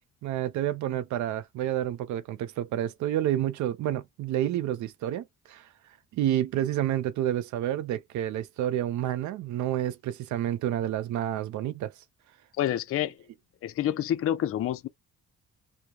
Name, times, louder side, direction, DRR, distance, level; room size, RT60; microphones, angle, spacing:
voice 1, 0.2-5.6 6.1-11.9, right 12 dB, 75° right, 0.5 m, -29 dB
voice 2, 12.6-13.1 13.6-14.9, left 11 dB, 50° left, 0.4 m, -28 dB
2.2 x 2.0 x 2.8 m
cardioid pair, 90°, 30 cm